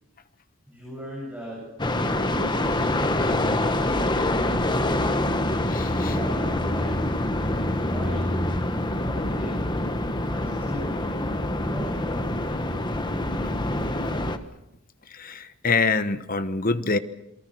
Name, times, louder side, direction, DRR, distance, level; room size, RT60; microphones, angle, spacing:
voice 1, 0.7-2.8 3.6-4.7 5.9-7.0 7.6-8.4 8.7-9.7 10.3-12.0, equal, 5° right, -4 dB, 7.1 m, -39 dB
sound 1, 1.8-14.4, left 1 dB, 20° left, 1.3 m, -25 dB
voice 2, 5.7-6.1 15.1-17.0, left 4 dB, 40° left, 11 dB, 1.2 m, -25 dB
28.0 x 23.0 x 6.3 m, 0.89 s
head